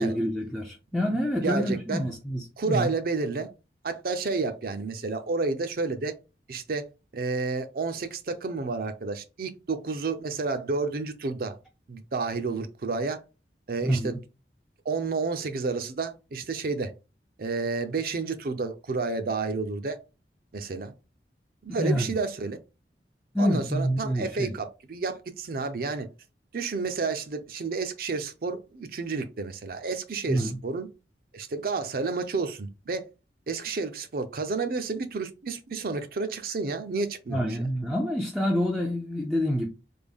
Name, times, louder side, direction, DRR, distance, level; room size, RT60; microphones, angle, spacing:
voice 1, 0.0-2.9 13.8-14.2 21.7-22.1 23.3-24.5 30.3-30.6 37.3-39.7, equal, ahead, 0.4 m, -27 dB
voice 2, 1.4-2.1 2.6-3.5 3.8-6.1 6.5-6.8 7.1-11.6 11.9-13.2 13.7-14.2 14.8-16.9 17.4-20.0 20.5-20.9 21.6-22.6 23.4-26.1 26.5-30.9 31.3-33.0 33.5-37.6, right 4 dB, 55° right, 0.5 m, -30 dB
3.4 x 2.2 x 3.5 m
head